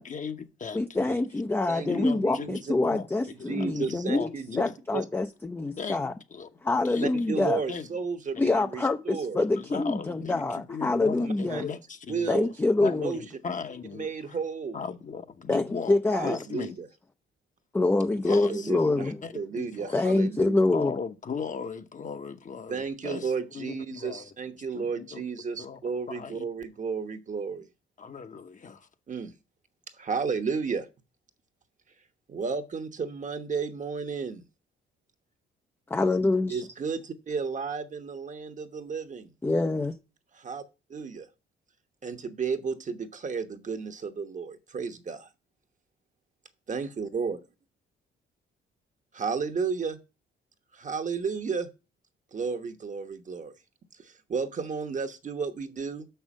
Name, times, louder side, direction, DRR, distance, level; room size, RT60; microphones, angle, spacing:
voice 1, 0.0-1.2 1.9-2.5 2.8-3.1 3.4-5.0 5.8-6.5 6.8-7.1 7.7-7.9 8.3-8.4 9.5-12.4 12.8-14.1 14.7-16.8 18.1-18.8 19.2-20.0 20.7-24.3 24.7-25.2 25.6-25.8 26.1-26.4 28.0-28.9, left 6 dB, 40° left, 0.9 m, -37 dB
voice 2, 0.7-4.3 4.6-6.1 6.6-7.6 8.4-11.6 12.3-13.1 15.5-16.4 17.7-19.2 19.9-20.9 35.9-36.6 39.4-40.0, left 2 dB, 10° left, 0.5 m, -26 dB
voice 3, 1.7-2.7 3.3-4.5 4.9-5.0 7.0-9.4 11.2-11.6 12.1-12.5 12.8-13.2 13.9-14.8 16.1-16.9 18.5-20.6 22.7-27.7 29.1-29.3 29.9-30.9 31.9-34.4 36.5-39.3 40.3-40.6 40.9-41.3 42.0-45.3 46.7-47.4 49.1-50.0 50.7-51.7 52.3-53.6 53.9-56.1, right 5 dB, 40° right, 1.1 m, -33 dB
6.2 x 5.6 x 6.2 m
cardioid pair, 90°, 20 cm